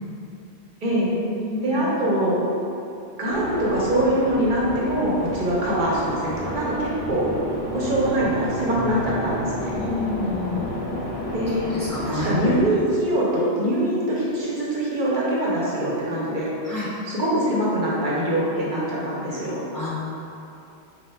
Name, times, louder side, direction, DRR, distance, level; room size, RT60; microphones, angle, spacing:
voice 1, 0.8-1.1 1.6-2.4 3.2-7.3 7.7-9.8 11.3-11.7 12.0-16.5 17.1-19.6, right 1 dB, 50° right, -6 dB, 0.9 m, -23 dB
voice 2, 1.3-1.8 9.8-10.7 11.7-12.3 16.2-16.3 16.6-16.9 19.7-19.9, left 3 dB, 25° left, -10 dB, 0.5 m, -29 dB
sound 1, 3.3-12.7, equal, 70° left, 1.0 m, -31 dB
3.2 x 2.6 x 4.3 m, 2.7 s
omnidirectional pair, 1.1 m